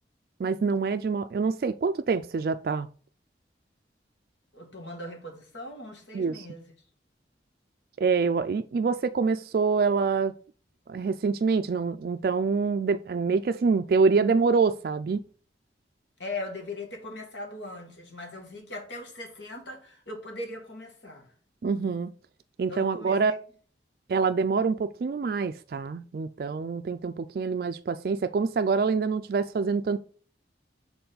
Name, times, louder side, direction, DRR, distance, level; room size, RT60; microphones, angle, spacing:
voice 1, 0.4-2.9 6.1-6.5 8.0-10.3 10.9-15.2 21.6-22.1 22.6-23.3 24.1-30.0, right 4 dB, 55° right, 0.3 m, -26 dB
voice 2, 4.5-6.6 16.2-21.3 22.7-23.4, left 2 dB, 85° left, 2.1 m, -39 dB
6.9 x 4.2 x 3.9 m
head